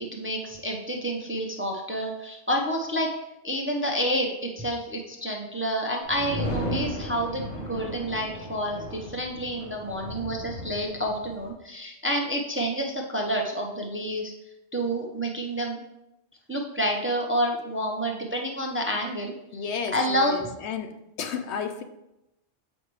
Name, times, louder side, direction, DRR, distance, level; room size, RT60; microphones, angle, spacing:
voice 1, 0.0-3.1 3.4-14.3 14.7-15.8 16.5-19.6 19.9-20.3, equal, 15° right, 1 dB, 0.6 m, -29 dB
sound 1, 6.0-11.5, equal, 90° left, 1.9 m, -35 dB
voice 2, 19.5-21.8, left 6 dB, 70° left, 7 dB, 0.8 m, -32 dB
7.9 x 5.3 x 3.1 m, 0.89 s
omnidirectional pair, 1.2 m